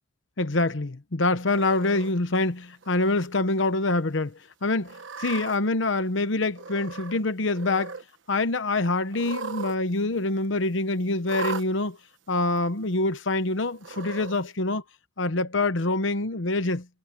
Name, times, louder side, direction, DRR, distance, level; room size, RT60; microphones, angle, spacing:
voice 1, 0.4-8.0 8.3-12.0 12.3-14.8 15.2-16.9, left 2 dB, 70° left, 1.0 m, -25 dB
Cat, 1.5-2.1 2.8-3.3 3.6-3.7 4.8-5.6 6.5-7.2 7.5-8.0 9.1-9.8 10.0-10.1 11.2-11.7 12.6-12.7 13.8-14.4, right 5 dB, 70° right, 1.2 m, -37 dB
head